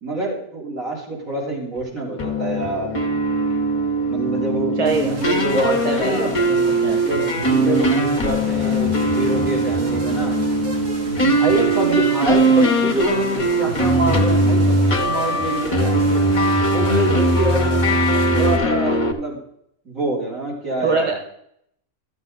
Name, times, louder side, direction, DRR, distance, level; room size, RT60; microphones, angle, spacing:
voice 1, 0.0-2.9 4.1-6.4 7.1-10.4 11.2-16.2 16.7-17.8 18.4-19.4 19.8-21.2, right 2 dB, 60° right, -4 dB, 4.0 m, -25 dB
sound 1, 2.2-19.1, right 1 dB, 30° left, 0.7 m, -20 dB
voice 2, 4.8-5.1 5.5-7.0 11.5-11.6 20.8-21.2, right 2 dB, 20° right, 1 dB, 1.6 m, -23 dB
sound 2, 4.9-18.6, right 1 dB, 85° right, 2.3 m, -33 dB
13.0 x 7.3 x 4.0 m, 0.71 s
omnidirectional pair, 1.6 m